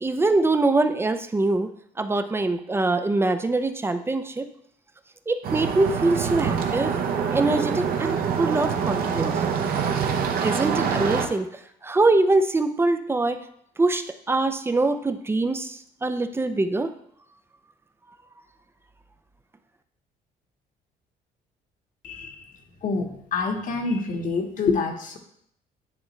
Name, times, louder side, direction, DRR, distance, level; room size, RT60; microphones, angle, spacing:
voice 1, 0.0-1.7 2.0-4.5 5.3-7.0 7.3-9.4 10.4-11.5 11.8-13.4 13.8-16.9, right 2 dB, 15° right, 9 dB, 0.5 m, -23 dB
sound 1, 5.4-11.3, right 6 dB, 60° right, 0.8 m, -25 dB
voice 2, 22.0-22.4 22.8-25.2, left 4 dB, 50° left, 4 dB, 1.2 m, -27 dB
9.7 x 3.5 x 3.2 m, 0.69 s
cardioid pair, 110°, 17 cm